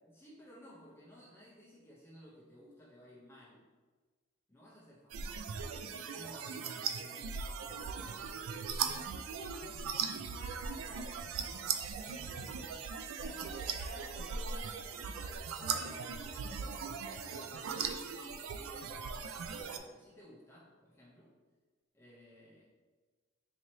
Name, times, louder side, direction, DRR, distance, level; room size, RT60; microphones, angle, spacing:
voice 1, 0.0-3.7 4.5-9.1 12.2-12.7 13.4-13.6 17.2-21.3 21.9-22.6, equal, 10° left, -7 dB, 0.5 m, -56 dB
sound 1, 5.1-19.8, right 6 dB, 75° right, 0.3 m, -39 dB
voice 2, 10.3-11.7 12.0-12.7 13.2-17.0, equal, 30° right, -5 dB, 0.9 m, -52 dB
4.1 x 2.7 x 3.1 m, 1.4 s
head